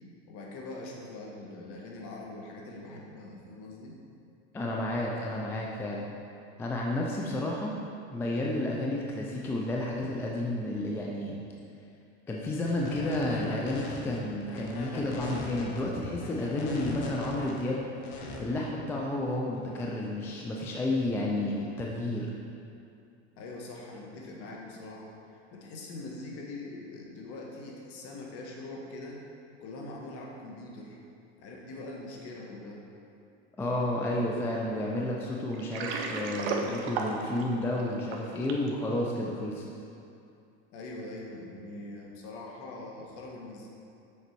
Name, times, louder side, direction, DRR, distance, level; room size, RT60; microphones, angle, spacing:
voice 1, 0.3-4.0 23.3-29.2 29.6-31.0 31.4-32.8 40.7-43.7, left 2 dB, 45° left, -1 dB, 1.3 m, -43 dB
voice 2, 4.5-6.1 6.6-7.7 8.1-11.4 12.3-17.8 18.4-22.3 33.6-39.6, left 1 dB, 10° left, -2 dB, 0.3 m, -31 dB
sound 1, 12.6-18.4, left 2 dB, 70° left, 1.2 m, -40 dB
Water, 35.5-38.7, right 4 dB, 65° right, 0.9 m, -34 dB
6.8 x 5.2 x 4.5 m, 2.5 s
supercardioid pair, 140°, 33 cm